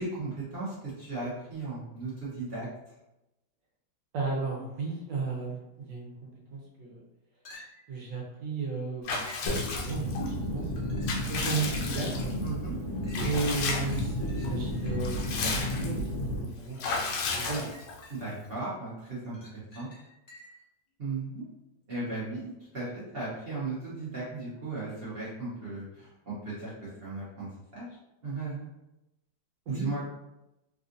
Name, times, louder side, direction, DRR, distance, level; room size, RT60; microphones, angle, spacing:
voice 1, 0.0-2.7 12.4-12.7 18.1-19.9 21.0-21.4 21.9-27.9 28.2-28.7 29.7-30.0, right 3 dB, 45° right, -9 dB, 0.9 m, -36 dB
voice 2, 4.1-7.0 7.9-9.1 9.4-10.9 11.3-12.3 13.2-15.5 15.8-17.7 29.7-30.0, right 4 dB, 80° right, -2 dB, 1.3 m, -35 dB
sound 1, 7.4-8.0 9.2-9.6 10.6-11.3 11.9-12.0 13.0-16.0 17.4-18.6 19.0-20.7 24.5-24.6, left 1 dB, 40° left, 0.8 m, -53 dB
Water / Bathtub (filling or washing) / Liquid, 9.0-10.3 10.8-12.5 13.1-14.1 14.4-14.5 14.9-16.0 16.8-18.1, left 4 dB, 85° left, 1.3 m, -33 dB
sound 2, 9.5-16.4, left 1 dB, 65° left, 1.5 m, -32 dB
3.4 x 2.4 x 2.6 m, 0.92 s
omnidirectional pair, 1.9 m